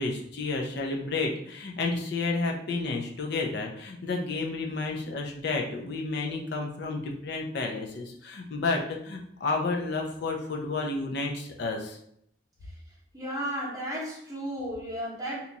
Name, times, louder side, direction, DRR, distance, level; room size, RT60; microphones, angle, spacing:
voice 1, 0.0-12.0, left 3 dB, 55° left, 1 dB, 0.5 m, -31 dB
voice 2, 13.1-15.6, equal, 15° right, -3 dB, 0.8 m, -34 dB
2.9 x 2.3 x 3.9 m, 0.68 s
head